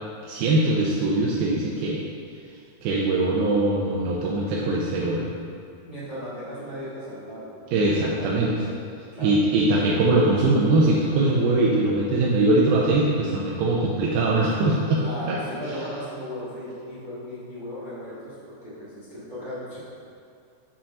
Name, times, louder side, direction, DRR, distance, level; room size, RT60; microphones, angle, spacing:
voice 1, 0.2-2.0 2.8-5.3 7.7-8.5 9.2-15.0 15.3-15.4, right 2 dB, 80° right, -4 dB, 2.3 m, -21 dB
voice 2, 5.8-7.7 8.2-8.8 9.1-9.4 9.8-9.9 15.0-19.8, equal, 40° right, -11 dB, 1.3 m, -36 dB
7.3 x 4.9 x 5.3 m, 2.3 s
omnidirectional pair, 4.9 m